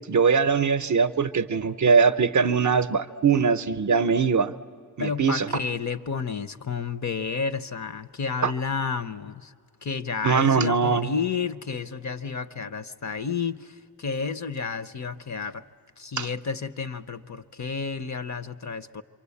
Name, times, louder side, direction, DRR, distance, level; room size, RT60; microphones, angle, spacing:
voice 1, 0.1-4.5 5.0-5.5 8.4-8.5 10.2-11.1 16.2-16.3, right 5 dB, 50° right, 12 dB, 0.6 m, -21 dB
voice 2, 5.0-9.5 9.8-15.7 16.0-19.0, left 5 dB, 45° left, 13 dB, 0.7 m, -31 dB
27.0 x 24.0 x 8.4 m, 2.3 s
wide cardioid pair, 130°, 40 cm